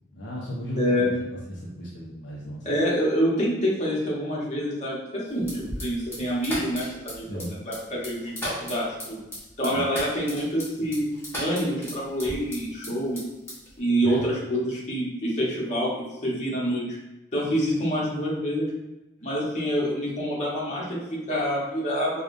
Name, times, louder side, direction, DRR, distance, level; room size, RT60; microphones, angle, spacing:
voice 1, 0.1-1.1 1.5-2.7 7.3-7.6 9.7-9.9 14.0-14.3, equal, 65° left, -5 dB, 0.7 m, -35 dB
voice 2, 0.8-1.1 2.6-9.2 9.6-11.1 11.4-13.2 13.8-16.9 17.3-18.7 19.2-22.2, equal, 40° left, -6 dB, 1.1 m, -27 dB
sound 1, 5.4-12.9 13.2-13.8, equal, 15° left, 1.2 m, -35 dB
4.9 x 2.4 x 2.6 m, 1.0 s
head